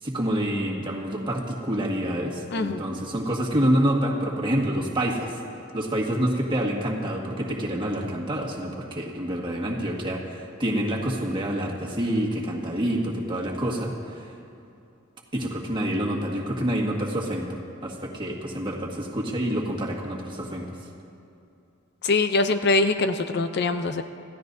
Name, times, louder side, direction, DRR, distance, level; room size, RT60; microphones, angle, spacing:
voice 1, 0.0-5.4 5.7-14.3 15.3-20.8, equal, 25° right, -2 dB, 1.7 m, -27 dB
voice 2, 2.5-2.8 22.0-24.0, left 3 dB, 55° left, 8 dB, 0.6 m, -23 dB
27.0 x 15.0 x 2.7 m, 2.6 s
head